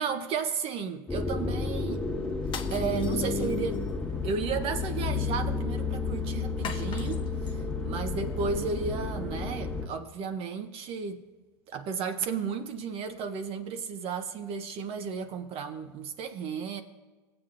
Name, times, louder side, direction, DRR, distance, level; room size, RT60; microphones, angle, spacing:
voice 1, 0.0-2.0 2.7-3.9 4.2-11.2 11.7-16.8, right 5 dB, 50° right, 0.7 m, -33 dB
sound 1, 1.1-9.9, left 4 dB, 5° left, 1.4 m, -31 dB
sound 2, 2.4-3.9 6.6-7.6, left 7 dB, 40° left, 0.7 m, -42 dB
16.5 x 7.8 x 2.5 m
supercardioid pair, 110°, 13 cm